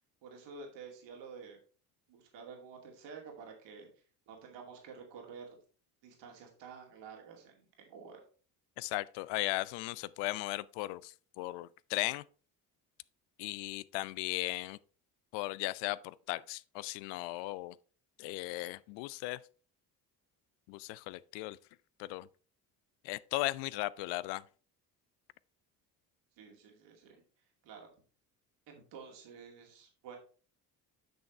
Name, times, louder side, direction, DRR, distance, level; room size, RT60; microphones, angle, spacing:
voice 1, 0.2-1.6 2.1-3.9 4.3-5.6 6.0-8.2 26.4-27.2 27.6-27.9 28.7-30.2, right 5 dB, 60° right, 2.5 m, -50 dB
voice 2, 8.8-12.2 13.4-14.8 15.3-17.7 18.2-19.4 20.7-21.6 22.0-22.3 23.0-24.4, left 19 dB, 60° left, 0.6 m, -37 dB
10.5 x 6.4 x 3.3 m
figure-of-eight pair, 50°, 48 cm